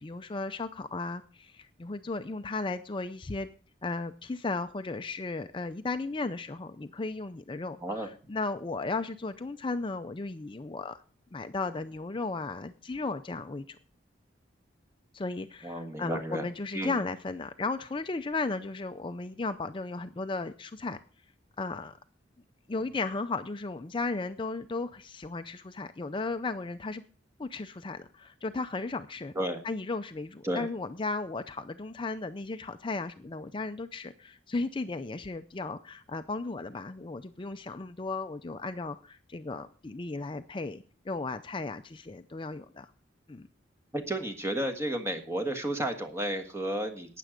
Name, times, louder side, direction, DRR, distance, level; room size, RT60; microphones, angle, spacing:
voice 1, 0.0-3.5 3.8-11.0 11.3-13.8 15.1-21.0 21.6-22.0 22.7-27.0 27.4-29.3 29.6-42.9 43.3-43.5, left 3 dB, 25° left, 9 dB, 0.5 m, -35 dB
voice 2, 15.6-16.4 16.7-17.0 29.3-29.6 30.4-30.7 43.9-47.2, right 1 dB, 15° right, 6 dB, 1.6 m, -32 dB
12.5 x 9.2 x 5.1 m, 0.39 s
head